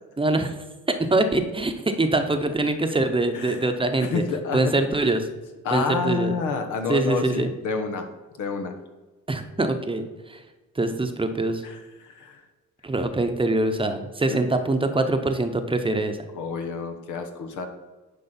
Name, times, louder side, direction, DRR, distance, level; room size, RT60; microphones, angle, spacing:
voice 1, 0.2-0.6 0.9-4.2 4.5-5.3 5.7-6.3 6.9-7.5 9.3-10.4 10.7-11.6 12.8-16.2, right 2 dB, 15° right, 7 dB, 0.9 m, -24 dB
voice 2, 3.3-3.7 4.0-4.7 5.6-8.1 8.4-8.7 11.6-12.4 14.3-14.5 16.3-17.7, left 5 dB, 85° left, 6 dB, 1.2 m, -29 dB
10.5 x 5.0 x 4.3 m, 1.2 s
cardioid pair, 90°, 30 cm